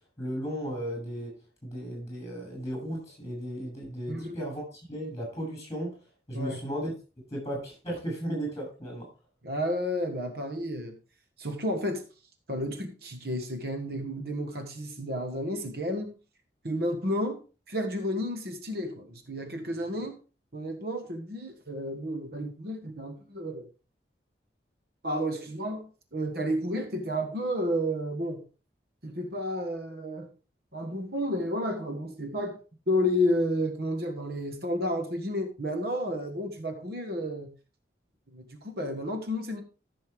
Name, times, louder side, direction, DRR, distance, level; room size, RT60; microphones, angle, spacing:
voice 1, 0.2-1.4 1.6-6.0 6.3-6.9 7.3-9.1, equal, 20° left, 7.2 m, -35 dB
voice 2, 9.4-11.0 11.4-12.0 12.5-16.1 16.6-17.4 17.7-20.2 20.5-23.7 25.0-28.4 29.0-30.3 30.7-32.6 32.9-37.5 38.3-39.6, equal, 60° right, 1.6 m, -31 dB
14.5 x 7.0 x 3.6 m
head